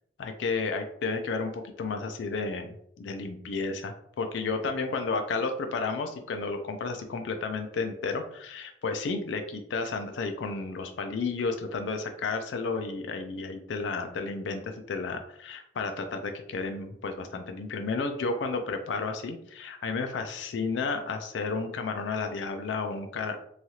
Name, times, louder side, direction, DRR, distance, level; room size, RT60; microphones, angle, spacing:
voice 1, 0.2-2.7 3.0-23.4, left 4 dB, 90° left, 6 dB, 0.4 m, -32 dB
3.1 x 2.3 x 2.7 m, 0.70 s
head